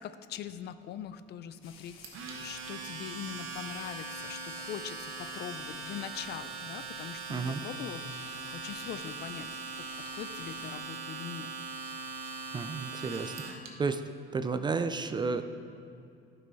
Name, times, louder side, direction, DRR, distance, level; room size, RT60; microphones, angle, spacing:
voice 1, 0.0-2.0 2.4-11.5, left 9 dB, 55° left, 12 dB, 0.4 m, -42 dB
sound 1, 1.6-10.8, left 5 dB, 80° left, 1.1 m, -53 dB
Domestic sounds home sounds, 2.0-13.7, right 4 dB, 80° right, 1.2 m, -41 dB
voice 2, 7.3-7.6 12.5-14.0 14.3-15.4, right 4 dB, 20° right, 10 dB, 0.3 m, -32 dB
12.5 x 5.5 x 4.1 m, 2.6 s
cardioid pair, 135°, 21 cm